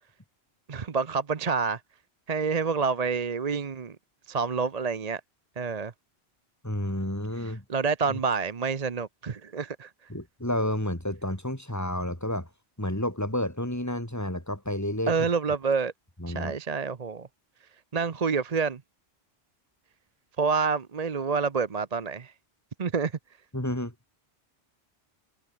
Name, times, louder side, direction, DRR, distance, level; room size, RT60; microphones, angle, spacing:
voice 1, 0.7-1.8 2.3-4.0 4.3-5.2 5.6-5.9 7.7-9.9 15.1-15.9 16.3-17.3 17.9-18.8 20.4-22.3 22.8-23.1, right 5 dB, 40° right, 0.9 m, -28 dB
voice 2, 6.6-7.6 10.1-12.5 12.8-15.1 16.2-16.5 23.5-23.9, left 1 dB, 15° left, 4.2 m, -30 dB
omnidirectional pair, 1.1 m